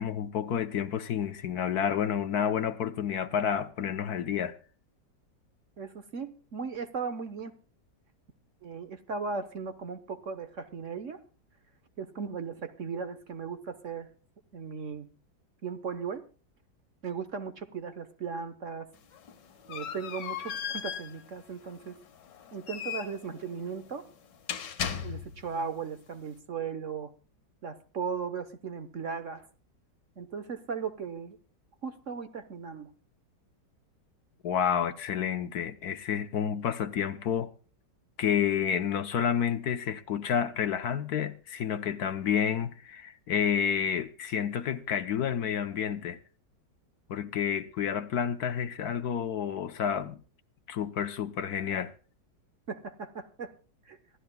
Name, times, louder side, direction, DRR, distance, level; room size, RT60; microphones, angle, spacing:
voice 1, 0.0-4.6 34.4-37.5 38.2-46.2 47.1-50.2 50.7-51.9, left 8 dB, 65° left, 1.3 m, -30 dB
voice 2, 5.8-7.5 8.6-11.2 12.0-14.1 14.5-15.1 15.6-16.2 17.0-18.9 19.7-21.9 22.5-24.1 25.0-27.1 27.6-29.5 30.2-31.4 31.8-32.9 52.7-53.5 53.9-54.0, right 5 dB, 50° right, 1.2 m, -37 dB
sound 1, 18.9-25.6, left 8 dB, 80° left, 1.8 m, -38 dB
26.5 x 12.5 x 2.2 m
omnidirectional pair, 1.9 m